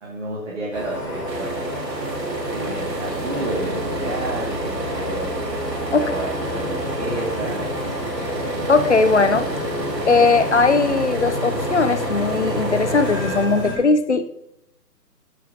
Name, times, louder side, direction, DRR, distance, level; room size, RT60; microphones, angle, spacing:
voice 1, 0.0-1.8 2.5-5.5 5.9-7.7, right 1 dB, 45° right, 2.2 m, -31 dB
sound 1, 0.7-13.7, equal, 10° left, 1.0 m, -28 dB
sound 2, 1.3-13.5, right 2 dB, 80° right, 2.0 m, -32 dB
voice 2, 8.7-9.5 10.1-14.3, left 4 dB, 45° left, 0.6 m, -18 dB
12.5 x 7.7 x 2.8 m
hypercardioid pair, 165°, 49 cm